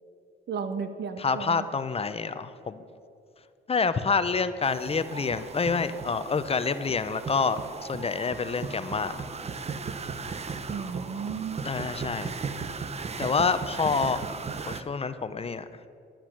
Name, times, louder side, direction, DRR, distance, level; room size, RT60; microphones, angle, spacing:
voice 1, 0.5-1.7 10.7-11.6, right 6 dB, 60° right, 9 dB, 1.2 m, -34 dB
voice 2, 1.2-2.8 3.7-9.2 11.6-12.3 13.2-14.2 14.7-15.6, left 5 dB, 30° left, 11 dB, 0.6 m, -27 dB
sound 1, 4.6-14.8, right 5 dB, 30° right, 0.8 m, -36 dB
12.5 x 10.0 x 6.1 m, 2.6 s
cardioid pair, 90°, 20 cm